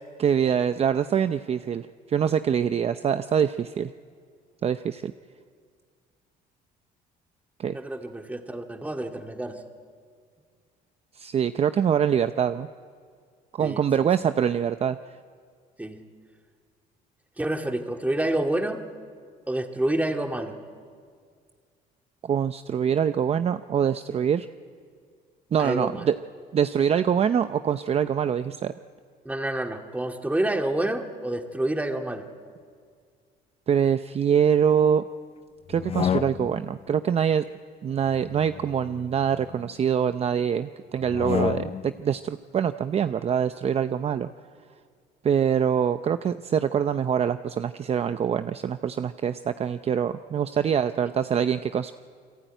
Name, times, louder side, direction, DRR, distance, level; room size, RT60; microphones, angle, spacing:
voice 1, 0.2-3.9 4.6-5.1 7.6-7.8 11.2-12.7 13.5-15.0 22.2-24.5 25.5-26.2 26.5-28.7 33.7-35.0 35.7-37.4 37.8-44.3 45.2-51.9, right 8 dB, 35° right, 11 dB, 0.6 m, -24 dB
voice 2, 7.7-9.6 13.6-14.1 15.8-16.0 17.4-18.8 19.5-20.6 25.6-26.1 29.3-32.2, right 1 dB, 10° right, 4 dB, 2.1 m, -28 dB
sound 1, 35.7-36.8 38.0-39.7 41.0-42.0, left 8 dB, 35° left, 0.6 m, -31 dB
28.5 x 22.0 x 9.2 m, 2.1 s
cardioid pair, 110°, 17 cm